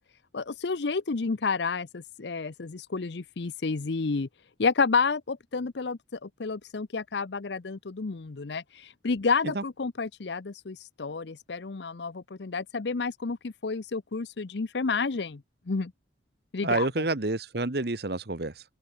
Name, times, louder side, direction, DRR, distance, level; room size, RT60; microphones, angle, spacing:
voice 1, 0.3-4.3 4.6-15.4 15.7-15.9 16.5-16.9, left 4 dB, 70° left, 0.7 m, -30 dB
voice 2, 16.6-18.6, right 2 dB, 60° right, 1.2 m, -28 dB
head